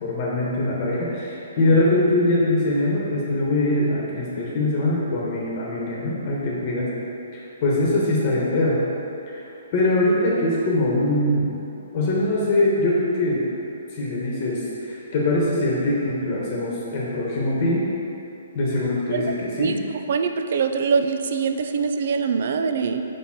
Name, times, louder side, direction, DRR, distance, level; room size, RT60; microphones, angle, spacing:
voice 1, 0.0-6.9 7.3-8.8 9.3-9.4 9.7-11.5 11.9-13.4 13.9-17.8 18.5-19.8, left 1 dB, 40° left, -5 dB, 1.2 m, -22 dB
voice 2, 20.1-23.0, right 5 dB, 60° right, 7 dB, 0.4 m, -23 dB
5.4 x 4.1 x 5.8 m, 2.8 s
hypercardioid pair, 145°, 0 cm